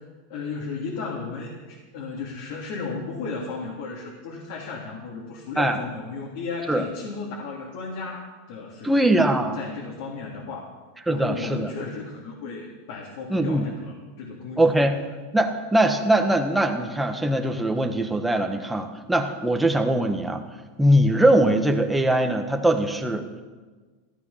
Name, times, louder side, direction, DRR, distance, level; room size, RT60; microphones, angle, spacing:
voice 1, 0.3-9.2 9.5-10.7 11.1-14.8, left 4 dB, 65° left, -2 dB, 3.0 m, -35 dB
voice 2, 8.8-9.6 11.1-11.7 13.3-13.6 14.6-15.0 15.3-20.4 20.8-23.3, right 1 dB, 5° right, 4 dB, 1.3 m, -21 dB
15.0 x 13.0 x 5.8 m, 1.3 s
supercardioid pair, 140°, 0 cm